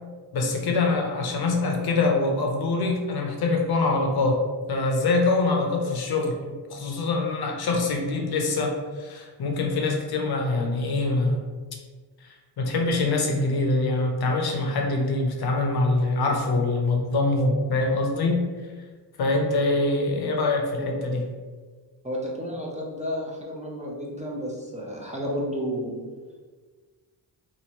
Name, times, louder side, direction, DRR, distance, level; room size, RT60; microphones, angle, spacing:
voice 1, 0.3-4.4 4.7-11.4 12.2-18.5 19.2-21.2, left 2 dB, 60° left, 2 dB, 0.7 m, -24 dB
voice 2, 22.0-26.0, equal, 15° right, -3 dB, 0.5 m, -31 dB
3.0 x 2.5 x 2.8 m, 1.4 s
cardioid pair, 85°, 43 cm